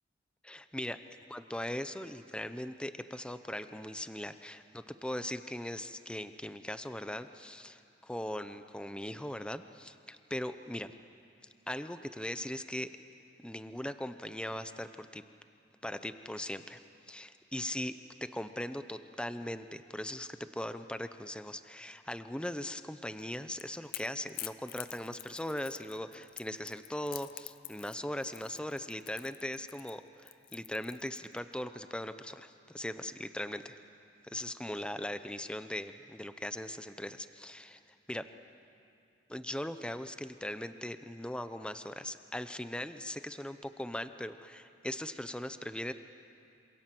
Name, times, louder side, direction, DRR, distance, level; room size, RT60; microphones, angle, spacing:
voice 1, 0.4-1.0 1.3-10.9 11.7-12.9 13.4-15.2 15.8-16.8 17.1-17.9 18.2-33.8 34.2-38.3 39.3-45.9, left 1 dB, 5° left, 10 dB, 0.7 m, -39 dB
Crackle / Crack, 23.2-31.4, left 14 dB, 50° left, 0.6 m, -47 dB
27.5 x 26.5 x 7.8 m, 2.5 s
head